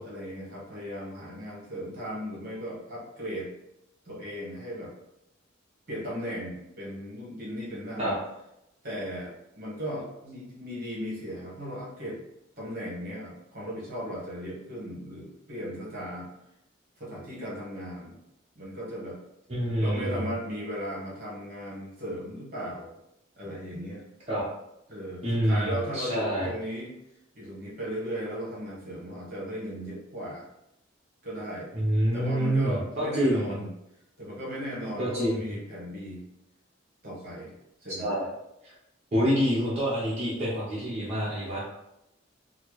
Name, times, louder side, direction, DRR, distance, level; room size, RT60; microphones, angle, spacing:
voice 1, 0.0-3.5 4.0-4.9 5.9-8.2 8.8-12.2 12.6-16.3 17.0-18.2 18.5-19.2 19.8-22.9 23.4-24.0 24.9-26.9 27.3-30.5 31.2-31.7 32.1-33.7 34.2-36.2 37.0-37.5 37.8-38.1, equal, 50° right, -5 dB, 1.2 m, -36 dB
voice 2, 19.5-20.2 24.3-24.4 25.2-26.5 31.7-33.6 35.0-35.4 37.9-38.3 38.6-38.7 39.1-41.7, equal, 35° right, -10 dB, 0.9 m, -27 dB
4.2 x 2.0 x 3.1 m, 0.84 s
head